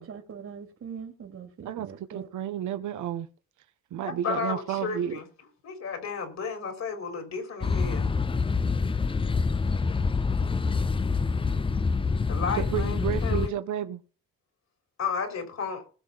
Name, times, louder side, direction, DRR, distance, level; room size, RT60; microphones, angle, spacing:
voice 1, 0.0-2.3, right 7 dB, 55° right, 2.6 m, -42 dB
voice 2, 1.6-3.3 3.9-5.2 12.5-14.0, right 10 dB, 75° right, 1.1 m, -32 dB
voice 3, 4.0-5.3 5.6-8.1 12.3-13.6 15.0-15.8, left 5 dB, 60° left, 4.4 m, -33 dB
sound 1, 7.6-13.5, left 4 dB, 15° left, 0.5 m, -26 dB
20.0 x 6.7 x 4.1 m
cardioid pair, 90°, 30 cm